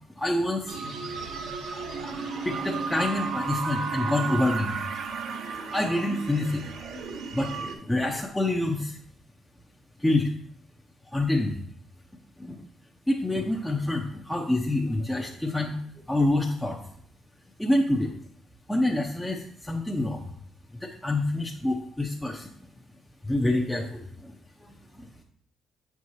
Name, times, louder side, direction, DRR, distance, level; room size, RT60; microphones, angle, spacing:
voice 1, 0.1-0.8 1.7-4.8 5.7-7.1 7.3-9.0 10.0-10.3 11.1-11.6 12.4-12.6 13.1-15.8 16.1-16.8 17.6-18.1 18.7-20.3 20.7-22.5 23.2-25.2, left 1 dB, 5° left, -2 dB, 0.7 m, -27 dB
sound 1, 0.7-7.7, right 5 dB, 75° right, 0.7 m, -33 dB
7.4 x 4.7 x 2.7 m, 0.62 s
cardioid pair, 90°, 0 cm